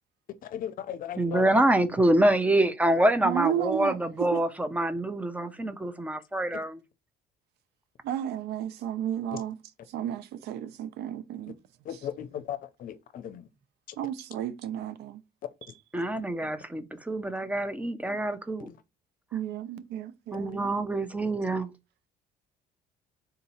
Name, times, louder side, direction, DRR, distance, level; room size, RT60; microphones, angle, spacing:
voice 1, 0.5-1.5 11.9-13.4, left 10 dB, 55° left, 0.6 m, -36 dB
voice 2, 1.2-6.8 15.9-18.7 20.3-21.7, right 1 dB, 10° right, 0.6 m, -26 dB
voice 3, 3.2-4.4 8.0-9.6 9.9-11.6 11.9-12.1 14.0-15.2 15.6-15.8 16.4-16.5 18.1-18.2 19.3-20.7, right 10 dB, 75° right, 0.5 m, -33 dB
3.8 x 2.8 x 4.2 m
cardioid pair, 110°, 17 cm